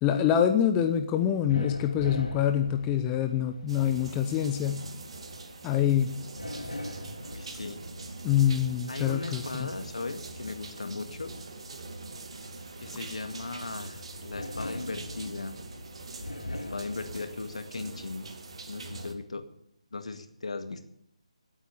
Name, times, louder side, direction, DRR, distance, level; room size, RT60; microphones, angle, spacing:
voice 1, 0.0-4.8 5.6-6.1 8.2-9.7, left 9 dB, 15° left, 7 dB, 0.6 m, -25 dB
sound 1, 1.1-17.6, left 1 dB, 85° left, 3.9 m, -43 dB
sound 2, 3.7-19.1, right 3 dB, 55° right, 2.3 m, -43 dB
voice 2, 7.3-7.8 8.9-11.3 12.8-15.6 16.7-18.3 18.7-19.5 19.9-20.8, left 3 dB, 70° left, 8 dB, 2.0 m, -37 dB
17.5 x 8.8 x 6.8 m, 0.71 s
figure-of-eight pair, 150°, 4 cm